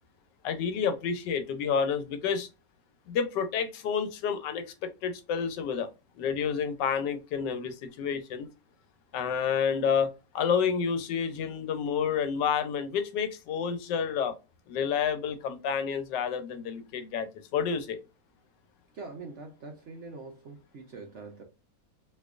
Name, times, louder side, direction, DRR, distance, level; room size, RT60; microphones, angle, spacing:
voice 1, 0.4-2.5 3.1-5.9 6.2-8.5 9.1-14.3 14.7-18.0, left 7 dB, 85° left, 1.3 m, -29 dB
voice 2, 18.9-21.4, right 3 dB, 60° right, 0.8 m, -43 dB
4.3 x 2.6 x 2.4 m
omnidirectional pair, 1.8 m